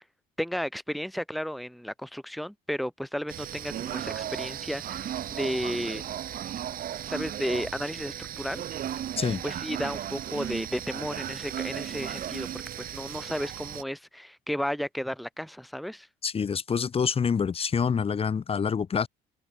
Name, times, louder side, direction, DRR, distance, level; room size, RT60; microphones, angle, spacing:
voice 1, 0.4-6.1 7.1-8.6 9.4-12.5 12.8-16.1, equal, ahead, 1.8 m, -33 dB
sound 1, 3.3-13.8, right 11 dB, 55° right, 3.3 m, -35 dB
voice 2, 16.2-19.1, left 6 dB, 35° left, 2.2 m, -26 dB
cardioid pair, 110°, 17 cm